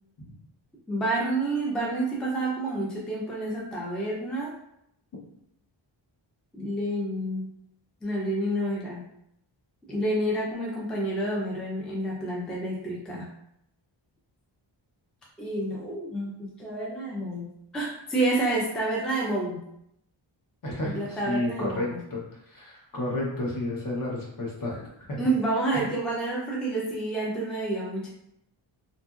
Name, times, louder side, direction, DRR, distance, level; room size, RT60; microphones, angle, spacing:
voice 1, 0.9-4.5 6.5-7.5 8.0-9.1 9.9-13.3 15.4-19.6 20.8-22.0 25.2-28.1, right 2 dB, ahead, -4 dB, 0.4 m, -29 dB
voice 2, 20.6-24.8 25.1-25.2 25.7-25.8, left 1 dB, 45° left, -3 dB, 0.8 m, -31 dB
2.8 x 2.5 x 2.3 m, 0.77 s
wide cardioid pair, 145°, 46 cm